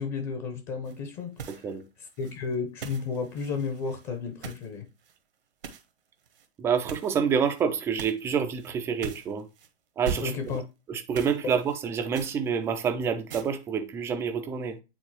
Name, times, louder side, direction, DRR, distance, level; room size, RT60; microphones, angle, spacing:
voice 1, 0.0-1.5 2.2-4.9 10.2-10.6, left 5 dB, 25° left, 0.8 m, -32 dB
sound 1, 0.9-1.1 1.3-1.8 2.1-4.7 5.0-5.2 5.6-5.9 6.2-6.5 6.9-7.6 8.0-8.3 8.6-8.7 9.0-9.7 10.0-10.6 11.1-11.8 12.1-12.9 13.3-13.5, right 7 dB, 65° right, 1.0 m, -40 dB
voice 2, 1.5-1.8 6.6-9.5 10.0-10.6 10.9-14.8, right 6 dB, 10° right, 0.4 m, -28 dB
9.0 x 3.8 x 2.9 m
figure-of-eight pair, 110°, 31 cm